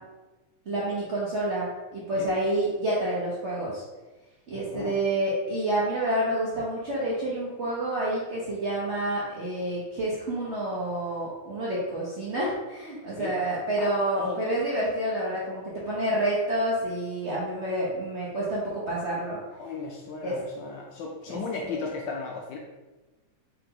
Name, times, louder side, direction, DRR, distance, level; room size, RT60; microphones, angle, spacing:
voice 1, 0.7-3.8 4.5-19.4 20.2-20.4 21.2-21.8, right 1 dB, 55° right, -7 dB, 0.8 m, -28 dB
voice 2, 4.5-4.9 13.2-13.3 13.8-13.9 14.2-14.4 19.6-22.6, left 4 dB, 75° left, 0 dB, 1.1 m, -36 dB
4.5 x 2.9 x 3.7 m, 1.2 s
omnidirectional pair, 2.3 m